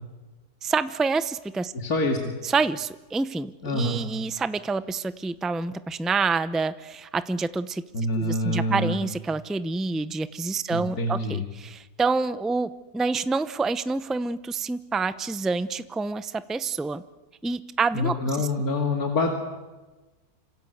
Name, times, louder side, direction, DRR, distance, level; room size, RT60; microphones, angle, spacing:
voice 1, 0.6-1.7 2.4-7.8 8.2-17.0 17.4-18.5, right 4 dB, ahead, 12 dB, 0.3 m, -27 dB
voice 2, 1.7-2.2 3.6-4.0 7.9-9.0 10.7-11.5 17.9-19.4, left 2 dB, 70° left, 2 dB, 2.9 m, -26 dB
27.0 x 26.5 x 8.1 m, 1.2 s
omnidirectional pair, 1.6 m